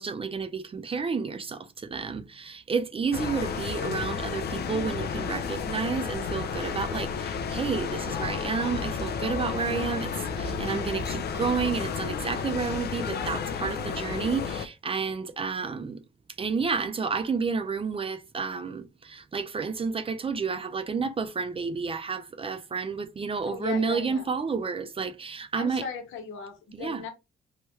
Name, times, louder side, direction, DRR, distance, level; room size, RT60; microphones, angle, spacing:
voice 1, 0.0-16.0 16.4-25.8 26.7-27.0, right 5 dB, 30° right, 0.5 m, -30 dB
sound 1, 3.1-14.7, left 6 dB, 55° left, 0.5 m, -32 dB
voice 2, 23.4-24.3 25.6-27.1, left 6 dB, 80° left, 1.0 m, -37 dB
3.1 x 2.2 x 3.1 m
cardioid pair, 90°, 20 cm